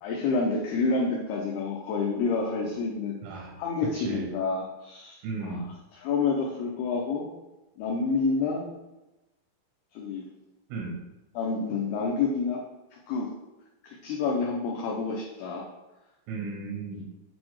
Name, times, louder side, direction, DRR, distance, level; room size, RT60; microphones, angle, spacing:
voice 1, 0.0-3.2 3.6-5.7 5.9-7.3 7.8-8.7 9.9-10.3 11.3-12.6 12.9-13.3 13.8-15.7, left 4 dB, 80° left, -2 dB, 2.4 m, -28 dB
voice 2, 3.2-3.5 4.0-4.3 5.2-5.7 10.7-11.0 16.3-17.0, right 3 dB, 80° right, 0 dB, 3.6 m, -34 dB
8.6 x 4.2 x 4.7 m, 1.0 s
omnidirectional pair, 5.7 m